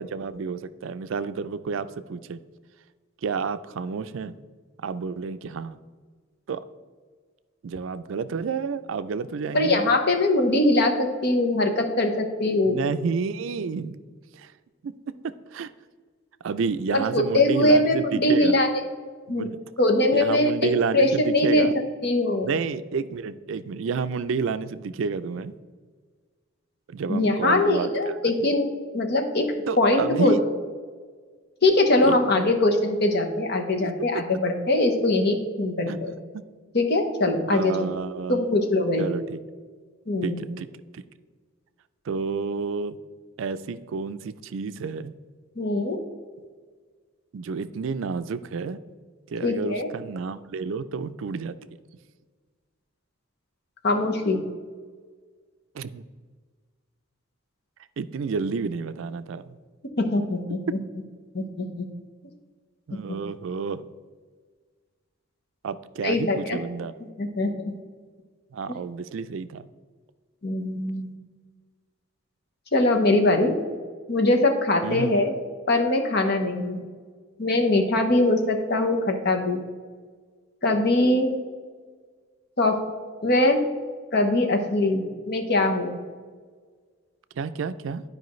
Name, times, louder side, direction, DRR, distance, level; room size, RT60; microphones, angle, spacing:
voice 1, 0.0-2.4 3.2-4.3 4.8-5.8 6.5-6.6 7.6-9.8 12.7-14.0 14.4-14.5 14.8-14.9 15.2-15.7 16.4-18.6 19.3-19.6 20.1-21.7 22.4-25.5 26.9-28.2 28.4-28.5 29.7-30.4 32.0-32.5 33.8-33.9 35.9-36.0 36.3-36.4 37.5-38.5 39.0-39.4 40.2-40.7 40.9-41.0 42.1-43.0 43.4-45.1 47.3-48.8 49.3-51.5 55.7-56.0 58.0-59.4 60.7-60.8 62.9-63.8 65.6-66.9 68.5-69.7 74.8-75.3 87.4-88.0, right 5 dB, 70° right, 12 dB, 0.4 m, -30 dB
voice 2, 9.5-12.8 16.9-18.7 19.3-19.5 19.8-20.5 20.9-21.7 22.0-22.6 27.1-29.5 29.8-30.3 31.6-36.1 36.7-37.9 38.3-39.1 40.1-40.4 45.6-46.0 49.4-49.9 53.8-54.4 60.0-60.8 61.3-61.9 62.9-63.2 66.0-66.6 67.2-67.5 70.4-71.1 72.7-73.5 74.1-75.3 75.7-76.8 77.4-79.6 80.6-81.3 82.6-82.8 83.2-83.6 84.1-85.9, left 2 dB, 55° left, 4 dB, 1.0 m, -22 dB
11.5 x 4.9 x 3.1 m, 1.5 s
head